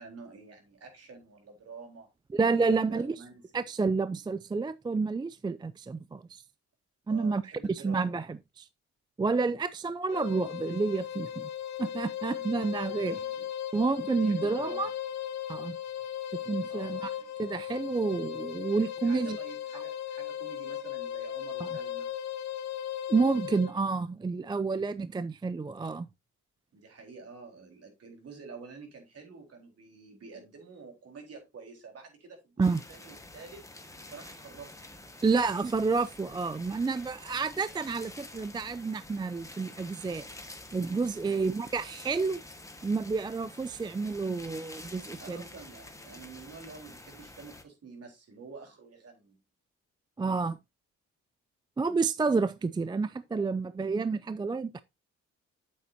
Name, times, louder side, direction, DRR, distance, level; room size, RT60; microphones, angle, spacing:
voice 1, 0.0-2.1 2.6-3.7 7.1-8.1 12.3-12.5 12.9-13.5 14.1-14.9 16.7-17.3 19.0-22.1 24.8-25.0 26.7-33.6 34.0-34.7 41.2-41.5 45.2-49.4, right 4 dB, 55° right, 4.0 m, -49 dB
voice 2, 2.3-3.2 3.5-6.4 7.1-8.7 9.2-11.5 11.8-13.2 13.7-14.9 15.5-15.8 16.5-17.1 17.4-19.4 21.6-21.7 23.1-26.1 32.6-32.8 35.2-40.3 40.7-42.4 42.8-45.4 50.2-50.6 51.8-54.8, right 4 dB, 15° right, 0.4 m, -29 dB
sound 1, 10.1-23.8, left 10 dB, 60° left, 1.3 m, -37 dB
sound 2, 32.6-47.6, left 2 dB, 10° left, 1.5 m, -48 dB
8.5 x 7.6 x 2.7 m
cardioid pair, 90°, 30 cm